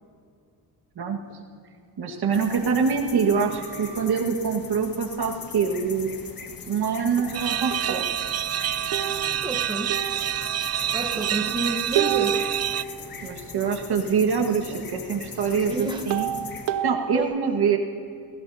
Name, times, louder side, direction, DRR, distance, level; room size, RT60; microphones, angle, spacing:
voice 1, 2.0-6.1 6.7-8.4 9.1-9.4 13.2-16.3 16.8-17.8, right 6 dB, 65° right, 2 dB, 1.8 m, -25 dB
sound 1, 2.3-16.7, left 5 dB, 55° left, 1.7 m, -41 dB
sound 2, 2.3-4.1 7.2-7.4 7.7-7.9 8.9-10.8 12.0-14.8 15.3-17.2, right 9 dB, 85° right, 0.8 m, -31 dB
sound 3, 7.3-12.8, right 10 dB, 40° right, 0.4 m, -27 dB
voice 2, 9.4-10.0 10.9-12.5 15.7-16.1 17.1-17.4, right 2 dB, 10° right, 4 dB, 1.2 m, -30 dB
29.5 x 17.0 x 2.8 m, 2.4 s
cardioid pair, 95°, 41 cm